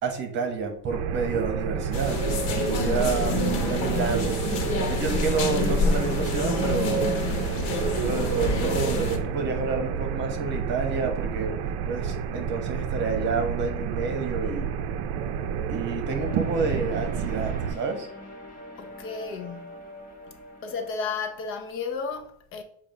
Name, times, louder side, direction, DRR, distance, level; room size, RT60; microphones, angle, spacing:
voice 1, 0.0-2.2 2.6-4.4 4.9-7.1 8.0-11.5 11.9-14.7 15.7-18.1, right 4 dB, 35° right, 1.3 m, -29 dB
sound 1, 0.9-17.8, right 7 dB, 55° right, 0.6 m, -29 dB
sound 2, 1.9-9.2, left 3 dB, 70° left, 1.3 m, -27 dB
sound 3, 16.2-21.3, left 1 dB, 25° left, 1.5 m, -44 dB
voice 2, 18.8-19.9 20.6-22.6, left 5 dB, 40° left, 0.8 m, -33 dB
7.2 x 2.6 x 5.3 m
cardioid pair, 150°, 31 cm